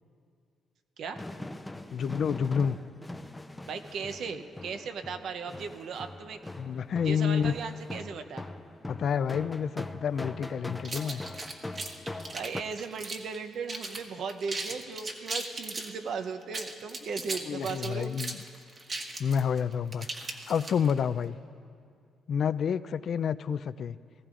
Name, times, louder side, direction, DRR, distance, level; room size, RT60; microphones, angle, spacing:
sound 1, 1.1-12.6, left 2 dB, 10° left, 0.6 m, -42 dB
voice 1, 1.9-2.8 6.6-7.5 8.9-11.2 17.5-18.4 19.2-21.4 22.3-24.0, left 7 dB, 60° left, 16 dB, 0.3 m, -29 dB
voice 2, 3.7-6.4 7.0-8.5 12.3-18.1, right 5 dB, 70° right, 7 dB, 0.7 m, -37 dB
sound 2, 10.8-13.4 13.7-14.0 14.3-15.9 16.4-21.0, right 2 dB, 40° right, 1.5 m, -37 dB
19.0 x 15.0 x 2.5 m, 2.3 s
cardioid pair, 90°, 0 cm